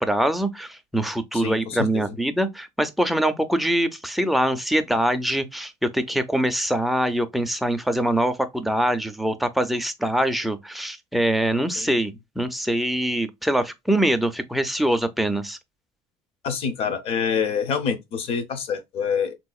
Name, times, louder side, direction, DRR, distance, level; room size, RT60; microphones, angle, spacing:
voice 1, 0.0-15.6, right 1 dB, ahead, 0.4 m, -24 dB
voice 2, 1.3-2.1 11.8-11.9 16.4-19.3, left 6 dB, 50° left, 0.7 m, -26 dB
3.5 x 2.8 x 2.3 m
cardioid pair, 145°, 13 cm